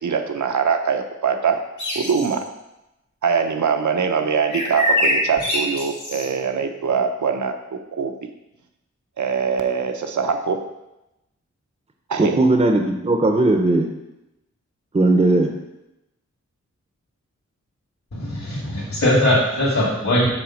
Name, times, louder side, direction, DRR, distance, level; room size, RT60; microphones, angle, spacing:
voice 1, 0.0-1.6 1.9-2.4 3.2-8.1 9.2-10.6 12.1-12.4, right 6 dB, 80° right, 5 dB, 0.8 m, -22 dB
sound 1, 1.8-2.4 4.5-6.3, left 1 dB, 90° left, 1.9 m, -23 dB
voice 2, 12.2-13.9 14.9-15.5, right 2 dB, 20° right, 4 dB, 0.6 m, -17 dB
voice 3, 18.1-20.3, left 1 dB, 65° left, -8 dB, 2.1 m, -20 dB
6.2 x 4.0 x 6.3 m, 0.92 s
wide cardioid pair, 105°, 29 cm